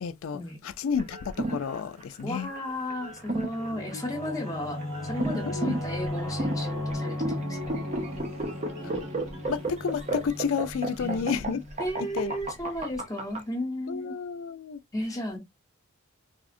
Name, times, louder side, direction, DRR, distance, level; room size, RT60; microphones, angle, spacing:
voice 1, 0.0-2.5 3.7-4.0 5.5-5.8 9.5-11.6 12.0-12.3 13.9-14.8, left 6 dB, 80° left, 0.4 m, -31 dB
sound 1, 0.9-13.4, right 2 dB, 35° right, 0.6 m, -33 dB
voice 2, 2.2-7.8 11.0-14.2 14.9-15.4, left 1 dB, 15° left, 1.0 m, -34 dB
Singing / Musical instrument, 3.0-12.1, left 1 dB, 75° right, 1.3 m, -36 dB
3.5 x 2.0 x 2.5 m
head